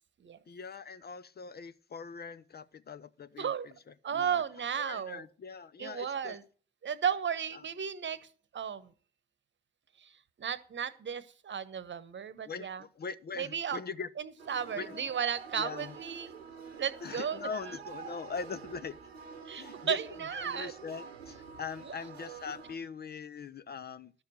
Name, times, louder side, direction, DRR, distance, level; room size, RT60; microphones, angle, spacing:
voice 1, 0.5-3.7 4.1-4.4 4.8-6.4 7.5-7.6 12.4-14.1 14.8-15.1 15.6-16.0 17.0-18.9 19.5-20.0 20.3-24.1, left 5 dB, 30° left, 0.7 m, -42 dB
voice 2, 3.4-3.7 4.0-5.2 5.8-6.4 6.8-8.3 8.5-8.9 10.0-10.1 10.4-12.8 13.4-13.8 14.2-16.3 16.8-17.4 19.5-20.7, right 8 dB, 35° right, 1.1 m, -34 dB
sound 1, 14.4-22.8, right 5 dB, 85° right, 1.1 m, -48 dB
12.0 x 6.9 x 6.3 m
figure-of-eight pair, 45°, 31 cm